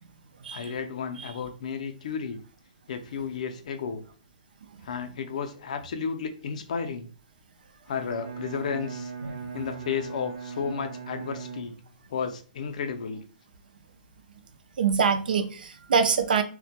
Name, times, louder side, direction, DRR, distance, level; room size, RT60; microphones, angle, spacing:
voice 1, 0.5-2.4 2.9-4.0 4.8-7.1 7.9-9.1 9.5-11.8 12.1-13.2, left 6 dB, 50° left, 6 dB, 0.4 m, -33 dB
Bowed string instrument, 7.9-12.1, right 6 dB, 55° right, 0.7 m, -39 dB
voice 2, 14.8-16.4, right 6 dB, 80° right, 10 dB, 0.4 m, -24 dB
2.1 x 2.1 x 2.8 m, 0.39 s
hypercardioid pair, 170°, 5 cm